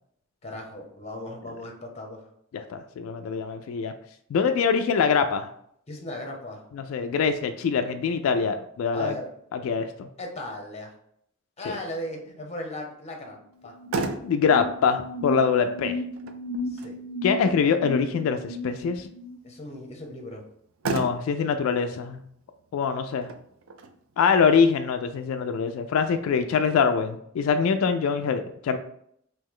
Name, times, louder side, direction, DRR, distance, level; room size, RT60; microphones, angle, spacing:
voice 1, 0.4-2.3 5.9-6.6 8.9-9.3 10.2-10.9 11.6-13.4 13.6-13.8 16.6-17.0 19.4-20.4, left 1 dB, 30° left, 2 dB, 0.8 m, -37 dB
voice 2, 2.5-3.9 4.3-5.5 6.7-9.1 9.5-10.1 11.7-11.8 13.9-16.0 17.2-19.1 20.8-22.2 22.7-23.3 24.2-28.8, left 6 dB, 85° left, 10 dB, 0.3 m, -24 dB
Motor vehicle (road), 13.5-26.5, right 4 dB, 85° right, 0.4 m, -39 dB
sound 1, 13.7-19.4, left 2 dB, ahead, 0.5 m, -35 dB
3.2 x 2.8 x 3.6 m, 0.70 s
head